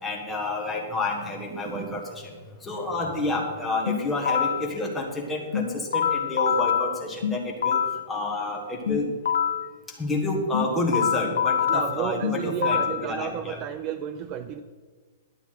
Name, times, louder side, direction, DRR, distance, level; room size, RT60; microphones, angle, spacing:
voice 1, 0.0-2.3 2.6-7.8 8.1-9.1 10.0-13.6, left 2 dB, 5° left, -2 dB, 1.5 m, -29 dB
voice 2, 1.5-2.0 11.7-14.6, right 9 dB, 25° right, 10 dB, 0.4 m, -32 dB
sound 1, 3.9-4.7 5.5-8.1 8.9-9.7 10.5-13.1, left 8 dB, 90° left, 0.8 m, -25 dB
11.5 x 7.1 x 5.8 m, 1.5 s
hypercardioid pair, 170°, 0 cm